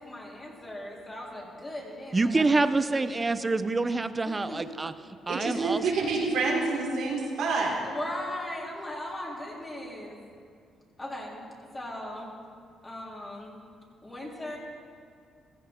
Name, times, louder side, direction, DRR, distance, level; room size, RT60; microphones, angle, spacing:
voice 1, 0.0-3.2 4.2-4.7 7.8-10.2 11.0-12.3 12.8-13.6 14.0-14.6, left 1 dB, 20° left, -3 dB, 3.3 m, -38 dB
voice 2, 2.1-4.9 5.3-5.8, right 3 dB, 25° right, 12 dB, 0.6 m, -26 dB
voice 3, 5.3-7.8, right 3 dB, 80° right, -2 dB, 3.5 m, -27 dB
15.5 x 14.5 x 3.7 m, 2.3 s
cardioid pair, 90°, 0 cm